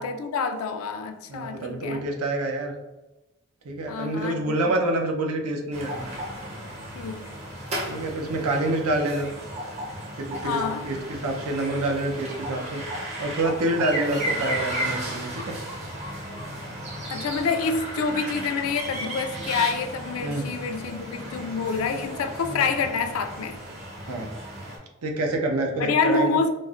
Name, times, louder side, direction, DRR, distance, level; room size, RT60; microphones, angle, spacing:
voice 1, 0.0-2.1 3.9-4.7 7.0-7.3 10.4-10.9 17.0-23.6 25.8-26.5, left 5 dB, 75° left, 0.3 m, -27 dB
voice 2, 1.3-2.7 3.6-6.1 7.9-9.3 10.2-11.0 11.2-12.8 13.2-15.6 20.2-20.4 22.5-22.6 24.1-24.3 25.0-26.3, right 1 dB, 85° right, 0.6 m, -27 dB
sound 1, 5.7-24.8, right 1 dB, 30° right, 0.5 m, -34 dB
4.1 x 2.0 x 2.4 m
head